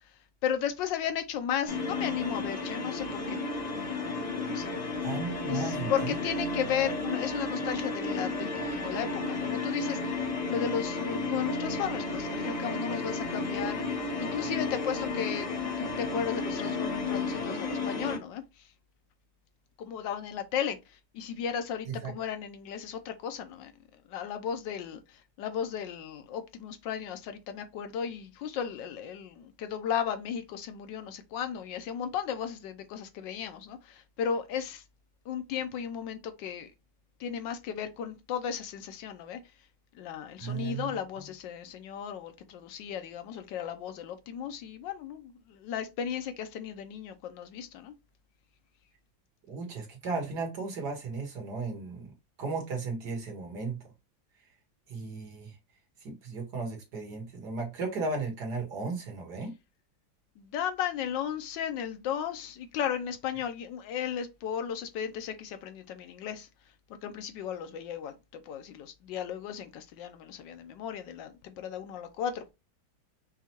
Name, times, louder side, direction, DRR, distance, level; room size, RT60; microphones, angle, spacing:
voice 1, 0.4-3.4 3.7-4.2 4.5-4.8 5.5-13.8 14.2-15.5 15.8-18.7 19.8-23.7 24.1-34.8 35.3-36.7 37.2-39.4 39.9-47.9 60.4-66.5 67.0-72.5, left 8 dB, 75° left, 1.2 m, -35 dB
sound 1, 1.7-18.2, left 3 dB, 35° left, 0.7 m, -33 dB
voice 2, 5.0-6.2 22.0-22.1 40.4-40.9 49.5-52.1 52.4-53.8 54.9-55.5 56.0-59.5, right 4 dB, 60° right, 1.8 m, -35 dB
5.5 x 2.2 x 2.9 m
omnidirectional pair, 2.1 m